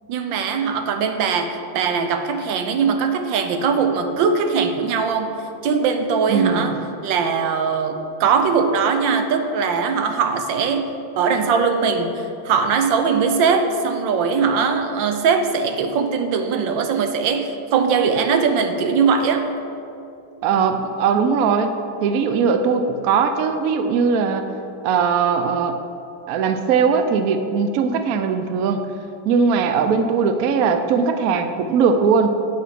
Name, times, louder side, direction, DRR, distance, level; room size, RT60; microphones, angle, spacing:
voice 1, 0.1-19.4, right 5 dB, 85° right, 7 dB, 1.4 m, -21 dB
voice 2, 6.3-6.7 20.4-24.4 24.8-25.8 26.3-28.8 29.2-32.4, right 5 dB, 65° right, 8 dB, 0.9 m, -19 dB
8.7 x 6.1 x 5.9 m, 2.6 s
omnidirectional pair, 2.0 m